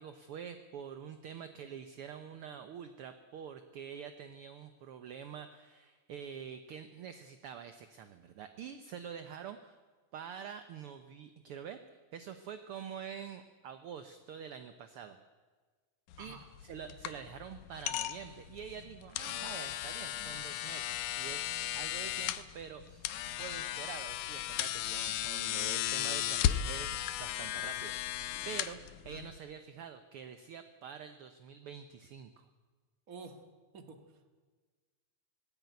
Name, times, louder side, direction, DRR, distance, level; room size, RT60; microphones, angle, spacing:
voice 1, 0.0-9.8 10.1-15.2 16.2-23.1 23.4-28.8 29.0-32.5, right 7 dB, 65° right, 9 dB, 1.5 m, -46 dB
sound 1, 16.1-29.4, left 12 dB, 90° left, 2.3 m, -36 dB
voice 2, 33.1-33.4 33.7-34.2, right 4 dB, 35° right, 7 dB, 1.8 m, -49 dB
19.0 x 16.0 x 9.4 m, 1.4 s
omnidirectional pair, 3.4 m